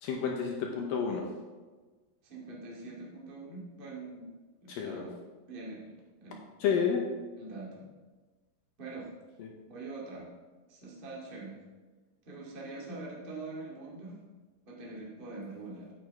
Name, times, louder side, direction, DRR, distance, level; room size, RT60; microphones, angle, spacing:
voice 1, 0.0-1.2 4.7-5.0 6.6-7.0 9.4-9.5, left 7 dB, 80° left, 1 dB, 2.0 m, -30 dB
voice 2, 2.2-4.3 4.6-5.2 5.5-5.9 6.2-6.5 7.4-7.9 8.8-9.1 9.7-10.3 10.7-11.6 12.2-14.2 14.6-15.9, right 3 dB, 50° right, -4 dB, 0.6 m, -43 dB
12.5 x 8.4 x 3.6 m, 1.3 s
omnidirectional pair, 5.3 m